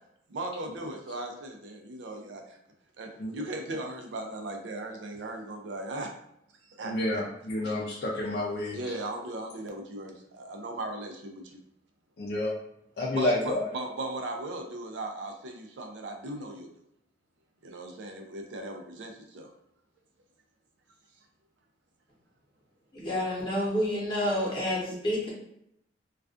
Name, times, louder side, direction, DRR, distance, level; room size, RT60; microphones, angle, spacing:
voice 1, 0.3-2.6 3.0-6.1 6.7-7.2 8.7-11.6 13.1-16.7 17.6-19.5 24.9-25.0, right 2 dB, 80° right, 3 dB, 0.4 m, -37 dB
voice 2, 6.8-8.8 12.2-12.5 13.0-13.6, left 1 dB, 60° left, -4 dB, 0.4 m, -29 dB
voice 3, 22.9-25.3, left 1 dB, 25° left, -6 dB, 0.8 m, -29 dB
2.3 x 2.3 x 2.4 m, 0.75 s
head